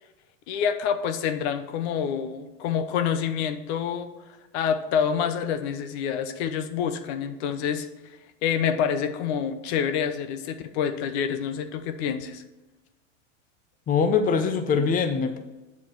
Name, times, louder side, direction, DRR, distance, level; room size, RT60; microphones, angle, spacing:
voice 1, 0.5-4.1 4.5-7.9 8.4-12.4, left 7 dB, 60° left, 9 dB, 0.9 m, -27 dB
voice 2, 13.9-15.4, left 5 dB, 20° left, 8 dB, 0.7 m, -23 dB
7.4 x 4.8 x 5.9 m, 1.1 s
hypercardioid pair, 110°, 37 cm